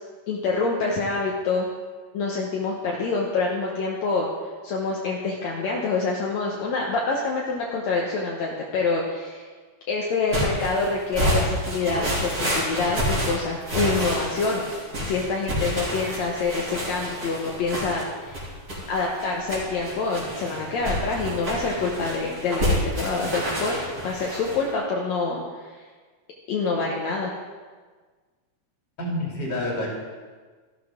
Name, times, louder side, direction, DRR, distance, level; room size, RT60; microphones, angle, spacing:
voice 1, 0.3-1.7 2.1-4.3 4.6-9.4 9.9-14.7 15.0-18.4 18.9-25.8 26.5-27.3, left 3 dB, 70° left, -2 dB, 2.3 m, -26 dB
sound 1, 10.3-24.6, equal, 30° right, 3.4 m, -28 dB
voice 2, 29.0-30.0, left 1 dB, 35° left, -3 dB, 3.2 m, -28 dB
14.0 x 12.5 x 3.7 m, 1.4 s
omnidirectional pair, 3.4 m